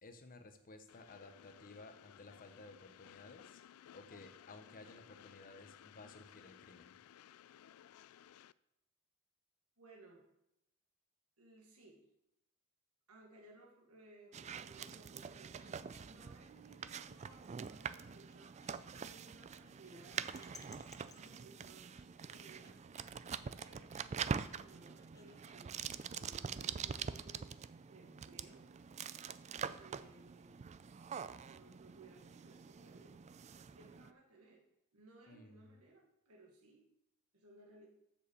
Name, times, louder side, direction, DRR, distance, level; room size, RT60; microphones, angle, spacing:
voice 1, 0.0-3.6 3.9-7.0 35.3-35.8, left 2 dB, 40° left, 7 dB, 1.0 m, -56 dB
Train, 0.9-8.5, left 10 dB, 80° left, 0.3 m, -59 dB
voice 2, 9.8-10.3 11.4-12.0 13.1-18.5 18.9-21.9 22.3-22.8 23.6-27.5 27.8-28.6 29.8-30.6 31.5-33.2 33.7-34.6 34.9-36.9 37.3-37.9, right 2 dB, 90° right, -1 dB, 1.6 m, -61 dB
sound 1, 14.3-34.1, right 6 dB, 30° right, 0.3 m, -45 dB
sound 2, 15.0-27.3, left 4 dB, 15° left, 0.7 m, -66 dB
7.3 x 7.0 x 6.8 m, 0.84 s
head